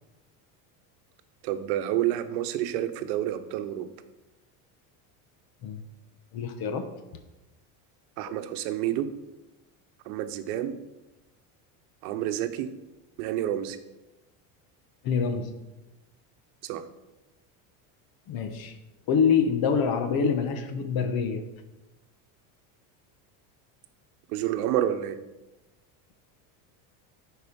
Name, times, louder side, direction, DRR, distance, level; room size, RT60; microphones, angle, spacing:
voice 1, 1.4-3.9 8.2-9.1 10.1-10.8 12.0-12.7 13.2-13.8 16.6-16.8 24.3-25.2, right 12 dB, 75° right, 9 dB, 1.0 m, -29 dB
voice 2, 6.3-6.9 8.3-8.4 15.0-15.5 18.3-18.8 19.1-21.4, left 6 dB, 50° left, 8 dB, 1.2 m, -26 dB
10.5 x 4.7 x 5.3 m, 1.0 s
supercardioid pair, 125°, 46 cm